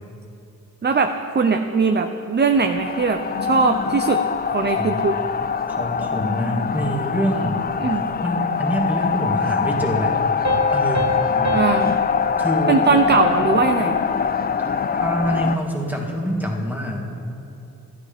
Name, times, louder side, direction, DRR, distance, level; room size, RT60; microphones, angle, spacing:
voice 1, 0.8-5.2 7.8-8.0 11.5-12.0 12.7-14.0, right 4 dB, 30° right, 6 dB, 0.6 m, -20 dB
sound 1, 2.5-15.6, left 6 dB, 25° left, 0.4 m, -23 dB
voice 2, 4.7-5.1 5.7-7.7 7.9-10.2 10.7-11.2 12.4-12.9 14.9-17.1, equal, 5° right, -1 dB, 2.1 m, -25 dB
Piano, 10.5-13.7, equal, 50° right, 1.1 m, -29 dB
13.0 x 9.4 x 3.5 m, 2.7 s
cardioid pair, 40°, 36 cm